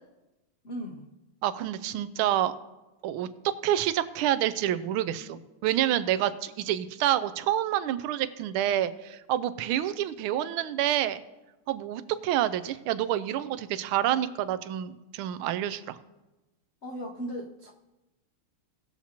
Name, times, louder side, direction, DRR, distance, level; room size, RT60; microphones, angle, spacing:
voice 1, 0.6-1.1 16.8-17.7, equal, 80° left, 0 dB, 0.5 m, -37 dB
voice 2, 1.4-2.5 3.0-11.2 11.7-16.0, right 12 dB, 80° right, 14 dB, 1.4 m, -28 dB
18.5 x 7.2 x 2.9 m, 1.0 s
omnidirectional pair, 2.4 m